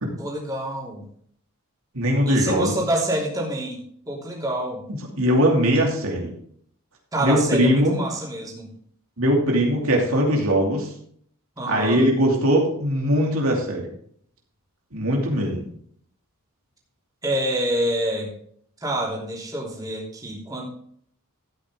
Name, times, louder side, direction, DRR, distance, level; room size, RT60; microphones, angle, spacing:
voice 1, 0.2-1.0 2.2-3.8 4.1-4.8 7.1-8.7 11.6-12.0 17.2-18.3 18.8-20.7, right 1 dB, 15° right, -3 dB, 3.2 m, -27 dB
voice 2, 1.9-2.7 5.2-6.3 7.2-8.0 9.2-10.9 11.7-13.9 14.9-15.7, equal, 70° right, 0 dB, 2.7 m, -20 dB
13.0 x 9.2 x 3.8 m, 0.63 s
head